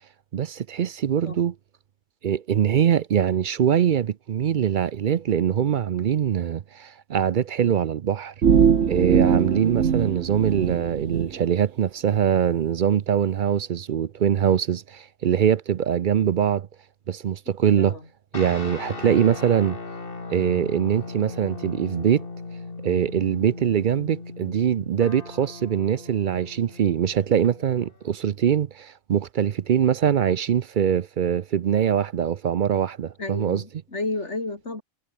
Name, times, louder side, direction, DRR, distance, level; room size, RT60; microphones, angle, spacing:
voice 1, 0.3-1.5 2.2-8.3 8.9-16.7 17.1-18.0 18.3-19.8 20.3-22.2 22.8-33.6, right 9 dB, 55° right, 0.6 m, -23 dB
sound 1, 8.4-11.3, right 7 dB, 75° right, 1.5 m, -21 dB
sound 2, 18.3-28.0, left 3 dB, 50° left, 2.4 m, -38 dB
voice 2, 19.0-19.4 33.2-34.8, left 2 dB, 75° left, 4.2 m, -32 dB
omnidirectional pair, 1.2 m